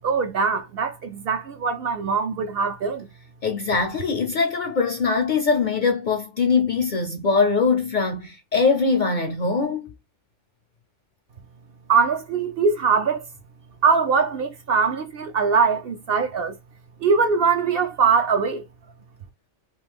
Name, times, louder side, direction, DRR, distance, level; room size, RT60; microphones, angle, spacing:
voice 1, 0.0-3.1 11.9-13.2 13.8-16.6 17.0-18.6, right 5 dB, 60° right, 0.6 m, -22 dB
voice 2, 3.4-9.9, left 4 dB, 55° left, 0.5 m, -22 dB
3.1 x 2.8 x 3.4 m
omnidirectional pair, 1.3 m